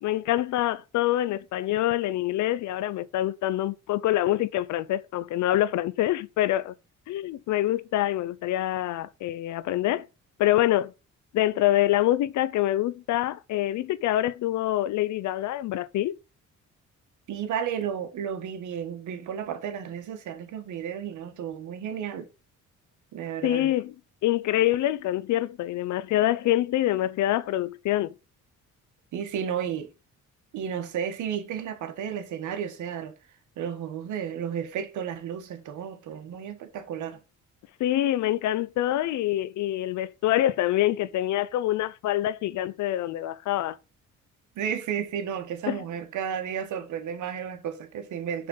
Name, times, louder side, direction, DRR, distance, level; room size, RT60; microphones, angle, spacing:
voice 1, 0.0-6.7 7.1-10.0 10.4-10.9 11.3-16.1 23.4-23.9 24.2-28.1 37.8-43.8 45.7-45.8, left 14 dB, 70° left, 0.5 m, -25 dB
voice 2, 17.3-22.3 23.1-23.7 29.1-29.9 30.5-33.1 33.6-37.2 44.6-48.5, right 8 dB, 80° right, 1.3 m, -33 dB
6.7 x 3.7 x 5.4 m
cardioid pair, 90°, 30 cm